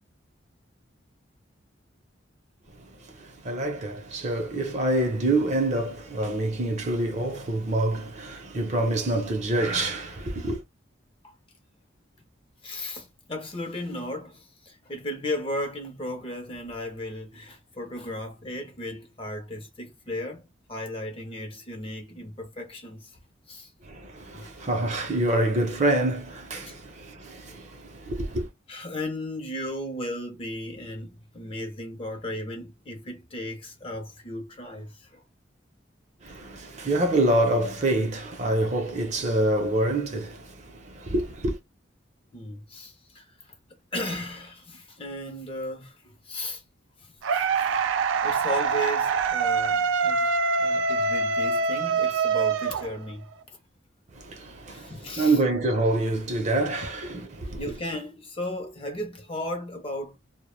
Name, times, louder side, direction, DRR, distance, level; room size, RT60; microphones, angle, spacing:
voice 1, 2.8-10.6 23.8-28.5 36.2-41.6 54.1-57.6, right 2 dB, 35° right, 0.6 m, -26 dB
voice 2, 12.6-23.2 23.5-23.7 24.3-24.6 26.6-26.8 28.7-35.2 42.3-43.6 43.9-46.6 47.0-47.9 48.2-53.3 54.7-55.4 57.6-60.2, left 1 dB, 30° left, 0.5 m, -35 dB
sound 1, 47.2-53.3, right 4 dB, 80° right, 0.4 m, -24 dB
2.1 x 2.1 x 3.0 m
head